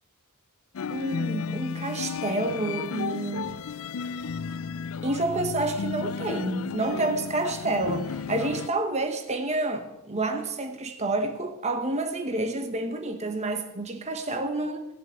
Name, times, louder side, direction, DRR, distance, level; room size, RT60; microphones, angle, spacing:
sound 1, 0.7-8.7, left 6 dB, 70° left, 0.4 m, -33 dB
voice 1, 0.9-3.5 5.0-14.8, right 2 dB, 30° right, 1.1 m, -29 dB
18.0 x 7.8 x 8.1 m
head